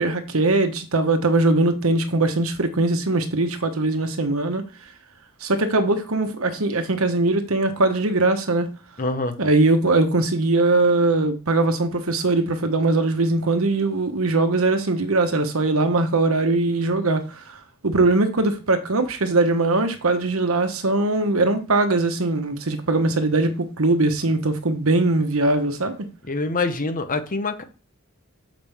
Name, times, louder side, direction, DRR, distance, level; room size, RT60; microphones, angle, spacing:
voice 1, 0.0-4.7 5.4-8.7 9.4-17.6 17.8-26.1, right 2 dB, 75° right, 1.1 m, -21 dB
voice 2, 9.0-9.4 26.3-27.6, left 3 dB, 40° left, 0.8 m, -25 dB
7.3 x 5.1 x 3.5 m
head